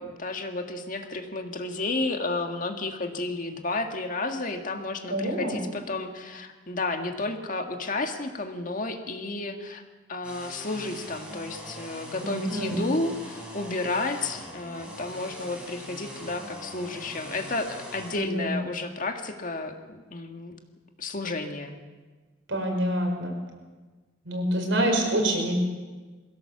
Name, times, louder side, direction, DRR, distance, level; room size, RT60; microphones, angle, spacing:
voice 1, 0.0-9.8 10.1-20.6 21.0-21.8, left 2 dB, 45° left, 4 dB, 1.8 m, -32 dB
voice 2, 5.1-5.6 12.2-12.8 18.1-18.5 22.5-23.3 24.2-25.6, right 1 dB, 75° right, 2 dB, 5.3 m, -26 dB
sound 1, 10.2-18.1, equal, 5° right, 5.0 m, -42 dB
22.0 x 16.5 x 7.2 m, 1.3 s
head